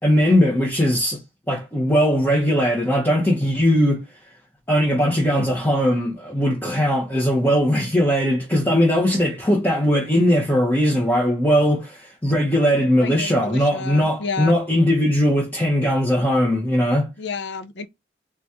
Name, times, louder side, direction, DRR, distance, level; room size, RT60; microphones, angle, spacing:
voice 1, 0.0-1.2 1.5-4.0 4.7-17.1, equal, 10° left, 1.1 m, -19 dB
voice 2, 13.0-14.6 17.2-17.9, left 4 dB, 65° left, 0.6 m, -30 dB
4.0 x 3.6 x 2.9 m
head